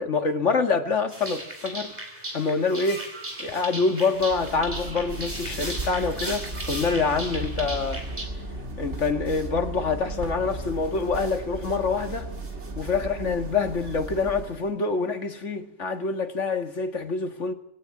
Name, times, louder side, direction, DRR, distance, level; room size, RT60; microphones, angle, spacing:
voice 1, 0.0-1.9 2.3-3.0 3.4-8.0 8.8-12.3 12.8-17.5, left 4 dB, 80° left, 2.2 m, -26 dB
sound 1, 1.1-8.2, right 1 dB, 35° right, 4.7 m, -36 dB
sound 2, 4.2-14.7, right 1 dB, 70° right, 2.8 m, -36 dB
22.0 x 17.5 x 9.5 m
omnidirectional pair, 1.2 m